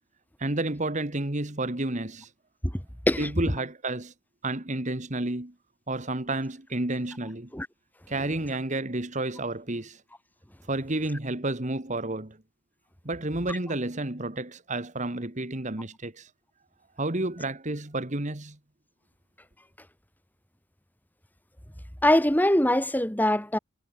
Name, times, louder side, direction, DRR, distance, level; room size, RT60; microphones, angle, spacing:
voice 1, 0.4-2.3 3.2-4.1 4.4-5.5 5.9-7.5 8.1-10.0 10.7-12.4 13.0-16.3 17.0-18.6, right 2 dB, 40° right, 2.0 m, -30 dB
voice 2, 22.0-23.6, left 1 dB, 10° left, 3.9 m, -22 dB
head